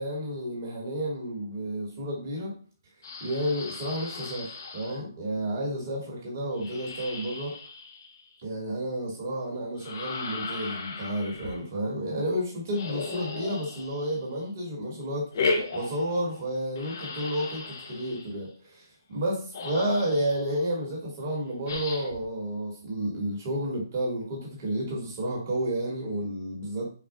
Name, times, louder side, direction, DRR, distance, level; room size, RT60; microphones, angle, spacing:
voice 1, 0.0-2.5 3.2-7.5 8.4-26.9, right 1 dB, 40° right, -3 dB, 1.9 m, -31 dB
sound 1, 3.0-5.0 6.6-8.4 9.8-11.6 12.7-14.4 15.3-16.5 16.8-18.3 19.3-19.4 19.5-20.6 21.7-22.3, left 3 dB, 50° left, 0.9 m, -35 dB
6.5 x 2.4 x 2.3 m, 0.41 s
hypercardioid pair, 155°, 2 cm